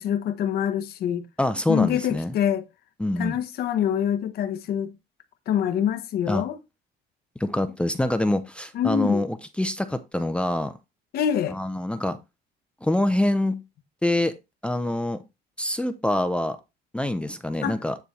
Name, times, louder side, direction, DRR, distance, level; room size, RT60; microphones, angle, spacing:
voice 1, 0.0-1.2 1.7-2.6 3.2-4.9 5.5-6.6 8.7-9.2 11.1-11.6 17.6-17.8, left 9 dB, 65° left, 1.0 m, -25 dB
voice 2, 1.4-2.3 3.0-3.4 6.3-6.4 7.4-10.7 11.5-12.2 12.8-13.6 14.0-14.3 14.6-15.2 15.6-16.6 16.9-18.0, left 1 dB, 5° left, 0.6 m, -25 dB
9.5 x 3.4 x 4.3 m
cardioid pair, 110°, 17 cm